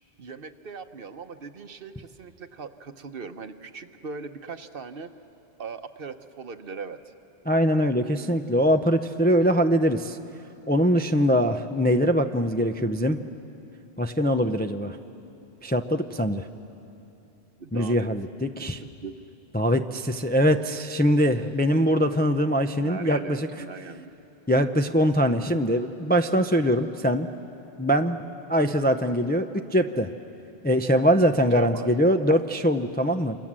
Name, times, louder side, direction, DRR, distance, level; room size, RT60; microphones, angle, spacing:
voice 1, 0.2-5.1 5.6-7.1 17.6-18.1 18.5-19.1 22.8-24.2 31.5-31.9, right 5 dB, 55° right, 9 dB, 1.1 m, -39 dB
voice 2, 7.5-10.2 10.7-13.2 14.0-15.0 15.6-16.4 17.7-18.8 19.5-23.5 24.5-27.3 27.8-28.2 28.5-30.1 30.6-33.4, equal, 10° left, 6 dB, 0.4 m, -22 dB
28.0 x 26.0 x 7.5 m, 2.9 s
omnidirectional pair, 1.2 m